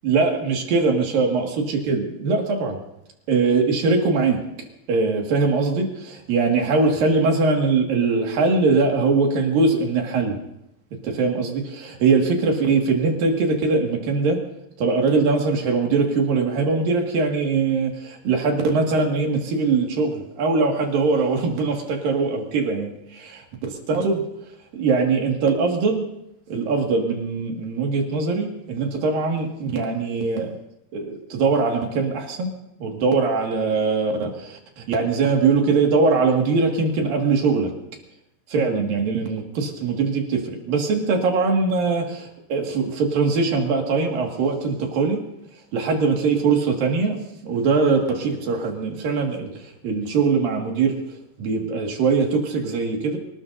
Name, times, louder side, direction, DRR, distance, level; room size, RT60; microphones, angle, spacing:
voice 1, 0.0-2.8 3.3-4.4 4.9-10.4 11.0-14.4 14.8-24.2 24.7-26.0 26.5-30.5 30.9-32.5 32.8-37.7 38.5-45.2 45.7-51.0 51.4-53.2, right 4 dB, 60° right, 1 dB, 3.5 m, -22 dB
27.0 x 19.5 x 2.7 m, 0.83 s
omnidirectional pair, 5.1 m